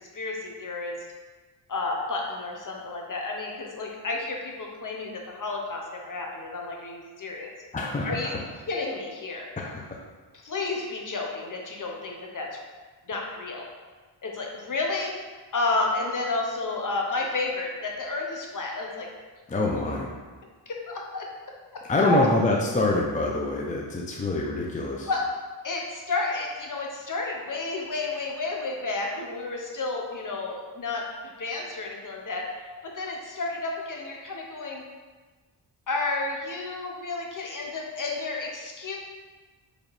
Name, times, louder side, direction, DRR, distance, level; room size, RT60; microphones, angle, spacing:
voice 1, 0.1-0.9 1.7-7.5 8.0-8.4 8.7-9.5 10.4-12.5 13.1-13.6 14.2-15.1 15.5-19.1 19.5-19.6 20.7-21.3 21.7-22.3 25.1-25.2 25.6-34.8 35.9-39.0, left 3 dB, 40° left, 0 dB, 1.0 m, -31 dB
voice 2, 7.7-8.4 9.6-10.0 19.5-20.1 21.9-25.1, left 2 dB, 15° left, -2 dB, 0.6 m, -26 dB
4.6 x 3.2 x 3.3 m, 1.3 s
supercardioid pair, 55°, 47 cm